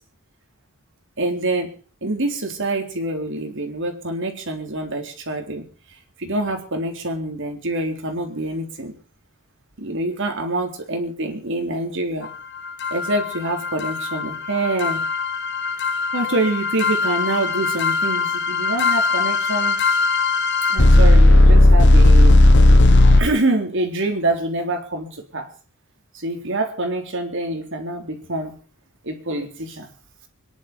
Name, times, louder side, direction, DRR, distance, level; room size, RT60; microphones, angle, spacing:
voice 1, 1.2-1.7 2.0-5.7 6.2-8.9 9.8-12.3 12.9-15.0 16.1-19.8 20.7-22.4 23.1-25.5 26.1-28.5 29.0-29.9, right 2 dB, 60° right, 4 dB, 3.8 m, -26 dB
sound 1, 12.8-23.2, left 2 dB, 55° left, 1.5 m, -15 dB
24.5 x 11.0 x 5.3 m, 0.38 s
head